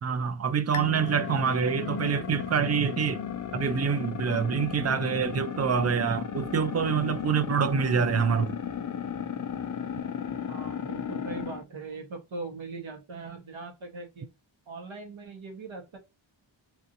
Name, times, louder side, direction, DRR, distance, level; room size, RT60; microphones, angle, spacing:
voice 1, 0.0-3.2 3.5-8.6, right 7 dB, 35° right, 0.4 m, -26 dB
sound 1, 0.7-11.6, left 7 dB, 40° left, 0.4 m, -34 dB
voice 2, 10.5-14.3 14.7-16.0, right 3 dB, 75° right, 1.3 m, -40 dB
3.3 x 2.7 x 2.5 m
wide cardioid pair, 120°, 48 cm